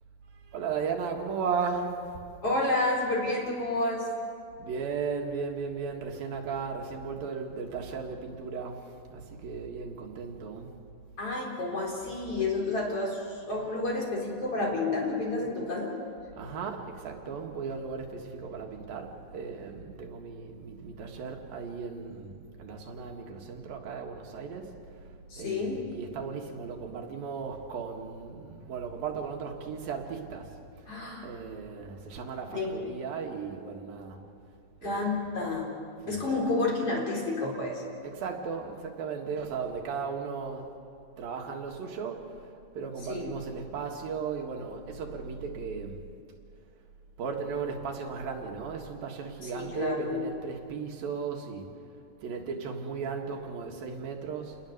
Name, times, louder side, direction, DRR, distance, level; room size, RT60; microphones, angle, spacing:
voice 1, 0.5-2.2 4.6-10.7 16.4-25.0 25.4-30.9 31.2-34.2 34.8-35.1 36.0-36.4 38.0-40.7 41.2-46.0 47.2-51.7 52.2-54.6, right 5 dB, 85° right, 2 dB, 3.6 m, -36 dB
voice 2, 2.4-4.1 11.2-16.0 25.3-25.8 30.9-31.3 32.5-32.8 34.8-35.7 36.1-37.8 43.1-43.3 49.4-50.3, left 2 dB, 40° left, -2 dB, 4.8 m, -30 dB
28.5 x 20.0 x 6.8 m, 2.4 s
omnidirectional pair, 4.1 m